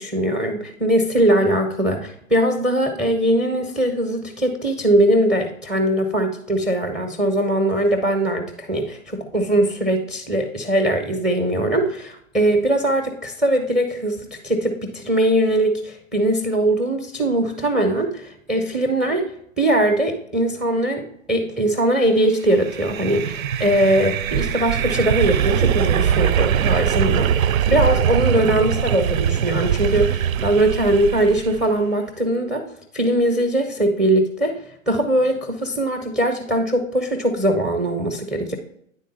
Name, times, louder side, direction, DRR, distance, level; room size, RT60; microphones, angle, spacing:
voice 1, 0.0-19.2 19.6-32.6 32.9-34.6 34.9-38.5, right 1 dB, ahead, 5 dB, 0.5 m, -21 dB
sound 1, 22.5-31.7, right 9 dB, 80° right, 0.5 m, -22 dB
9.8 x 3.8 x 3.9 m, 0.69 s
hypercardioid pair, 125°, 41 cm